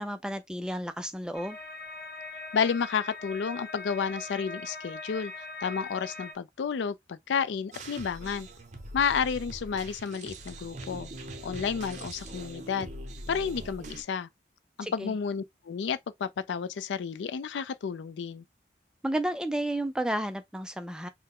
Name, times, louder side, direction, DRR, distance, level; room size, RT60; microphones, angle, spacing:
voice 1, 0.0-1.6 14.8-15.1 19.0-21.1, right 1 dB, 5° right, 0.3 m, -32 dB
sound 1, 1.3-6.3, left 2 dB, 50° left, 0.8 m, -41 dB
voice 2, 2.5-5.3 5.6-8.5 8.9-11.1 11.4-12.9 13.3-14.3 14.8-18.4, left 6 dB, 90° left, 0.4 m, -31 dB
sound 2, 7.7-14.0, right 1 dB, 40° right, 0.8 m, -42 dB
4.3 x 2.1 x 3.5 m
head